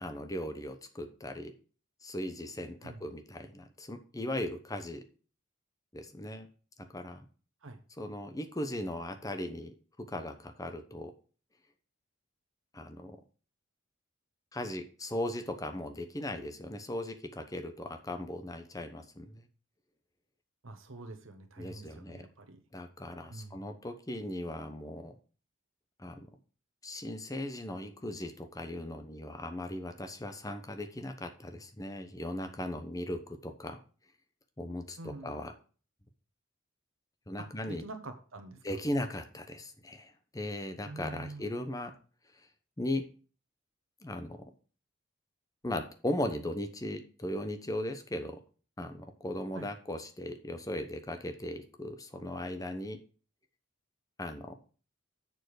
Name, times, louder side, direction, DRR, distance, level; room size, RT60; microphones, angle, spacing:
voice 1, 0.0-1.5 2.0-5.0 5.9-6.5 6.8-7.3 8.0-11.1 12.7-13.2 14.5-19.4 21.6-22.3 22.7-25.2 26.0-26.3 26.8-33.8 34.6-35.5 37.3-37.8 38.6-41.9 42.8-43.1 44.0-44.4 45.6-48.4 48.8-53.0 54.2-54.6, left 1 dB, 15° left, 7 dB, 0.9 m, -38 dB
voice 2, 20.6-22.6 23.3-23.7 35.0-35.3 37.4-38.6 40.8-41.6 49.5-49.7, right 2 dB, 80° right, 6 dB, 1.1 m, -46 dB
7.2 x 6.6 x 4.7 m, 0.39 s
head